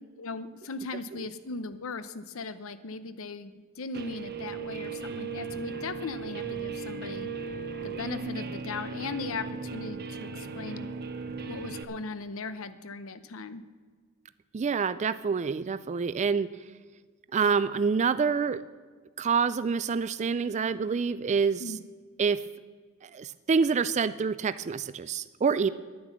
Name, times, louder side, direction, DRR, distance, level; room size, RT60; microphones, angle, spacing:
voice 1, 0.2-7.3 7.8-10.9 11.5-13.6 21.6-21.8, left 3 dB, 65° left, 12 dB, 0.8 m, -38 dB
Guitar, 3.9-11.8, right 4 dB, 50° right, 0.9 m, -37 dB
voice 2, 14.5-16.5 17.3-18.6 19.2-21.6 22.2-22.5 23.0-25.7, right 5 dB, 35° right, 14 dB, 0.4 m, -27 dB
11.0 x 9.6 x 7.1 m, 1.5 s
head